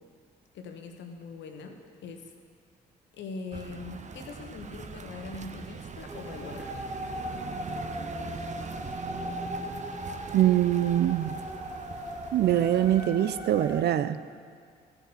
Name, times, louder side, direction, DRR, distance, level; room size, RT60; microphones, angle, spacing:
voice 1, 0.5-2.3 3.1-6.8, left 4 dB, 65° left, 4 dB, 1.5 m, -42 dB
sound 1, 3.5-13.1, right 5 dB, 35° right, 1.0 m, -41 dB
sound 2, 6.1-13.8, equal, 20° right, 4.1 m, -38 dB
voice 2, 10.3-11.3 12.3-14.2, right 12 dB, 55° right, 13 dB, 0.6 m, -23 dB
15.5 x 7.2 x 7.0 m, 2.2 s
hypercardioid pair, 45°, 21 cm